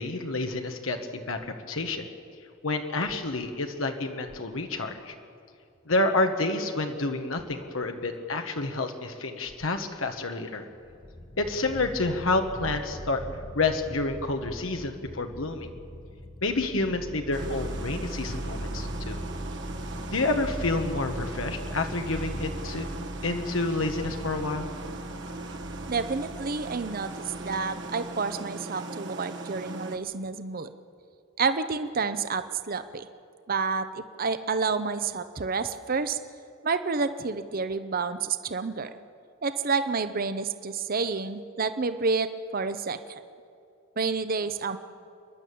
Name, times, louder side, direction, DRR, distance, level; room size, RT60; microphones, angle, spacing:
voice 1, 0.0-2.1 2.6-5.1 5.9-10.7 11.4-13.2 13.5-15.7 16.4-19.2 20.1-22.9 23.2-24.7, left 2 dB, 85° left, 5 dB, 1.4 m, -29 dB
sound 1, 10.7-28.1, equal, 25° left, 1.2 m, -39 dB
sound 2, 17.3-30.0, right 2 dB, 65° right, 1.5 m, -39 dB
voice 2, 25.9-27.1 27.4-30.7 31.4-33.1 33.5-36.2 36.6-38.9 39.4-43.0 44.0-44.8, right 4 dB, 45° right, 11 dB, 0.8 m, -29 dB
28.5 x 11.0 x 8.6 m, 2.5 s
head